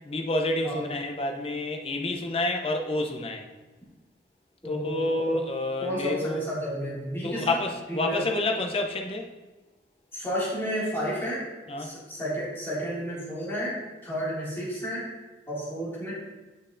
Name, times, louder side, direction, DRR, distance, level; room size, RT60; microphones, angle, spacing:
voice 1, 0.0-3.4 4.7-6.4 7.2-9.3 11.7-11.9, left 2 dB, 30° left, 3 dB, 0.6 m, -28 dB
voice 2, 4.6-5.4 5.8-7.6 7.9-8.2 10.1-11.4 11.8-15.0 15.5-16.1, equal, 15° left, -8 dB, 2.1 m, -32 dB
7.5 x 6.5 x 2.5 m, 1.2 s
head